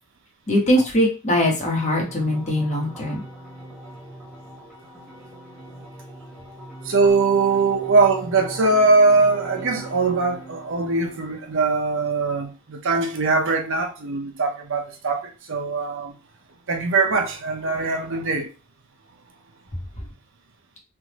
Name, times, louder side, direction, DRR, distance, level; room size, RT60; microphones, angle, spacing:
voice 1, 0.5-3.2, left 1 dB, 35° left, 1.2 m, -21 dB
sound 1, 1.3-12.3, right 1 dB, 5° right, 1.1 m, -41 dB
voice 2, 6.8-16.2 16.7-18.5, right 3 dB, 65° right, 0.7 m, -21 dB
3.5 x 2.6 x 3.0 m
head